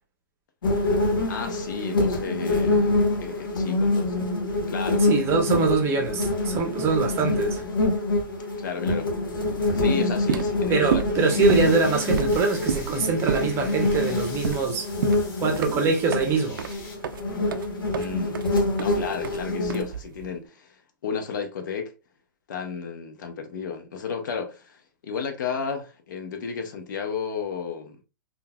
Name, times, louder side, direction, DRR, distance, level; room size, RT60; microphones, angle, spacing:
sound 1, 0.6-19.8, left 2 dB, 90° left, 1.1 m, -26 dB
voice 1, 1.3-4.3 4.7-5.1 8.6-11.0 11.4-11.8 17.9-18.4 18.8-21.9 22.5-28.0, left 6 dB, 65° left, 0.8 m, -33 dB
voice 2, 5.0-7.6 10.7-14.9 15.4-16.6, right 4 dB, 20° right, 0.7 m, -24 dB
sound 2, 10.1-20.3, right 7 dB, 75° right, 0.4 m, -31 dB
sound 3, 11.1-17.0, left 3 dB, 45° left, 1.7 m, -44 dB
3.8 x 2.3 x 2.2 m
hypercardioid pair, 140°, 11 cm